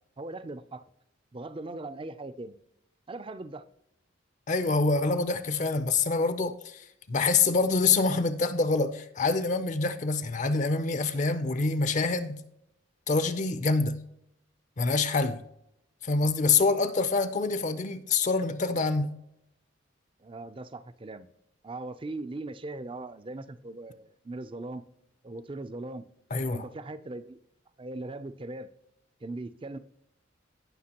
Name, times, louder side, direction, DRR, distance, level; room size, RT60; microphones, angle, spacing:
voice 1, 0.2-0.8 1.3-2.6 3.1-3.6 20.2-21.3 21.6-24.8 25.2-26.1 26.5-27.4 27.8-28.7 29.2-29.8, right 2 dB, 25° right, 0.4 m, -39 dB
voice 2, 4.5-12.4 13.1-14.0 14.8-15.4 16.0-19.2 26.3-26.6, left 3 dB, 40° left, 0.5 m, -26 dB
17.5 x 5.8 x 2.9 m
head